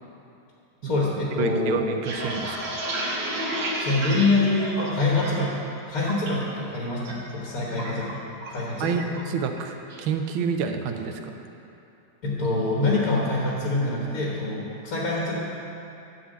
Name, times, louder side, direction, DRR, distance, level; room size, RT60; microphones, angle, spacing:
voice 1, 0.8-1.8 3.8-8.2 8.5-9.0 12.2-15.4, left 2 dB, 50° left, -4 dB, 1.5 m, -25 dB
voice 2, 1.4-2.7 8.8-11.4, right 6 dB, 90° right, 6 dB, 1.4 m, -28 dB
sound 1, 1.8-5.5 5.8-6.3 6.7-7.1 7.4-8.7 9.0-9.2 9.6-10.0, right 1 dB, 75° right, 2.0 m, -31 dB
10.0 x 4.1 x 7.5 m, 2.8 s
omnidirectional pair, 2.1 m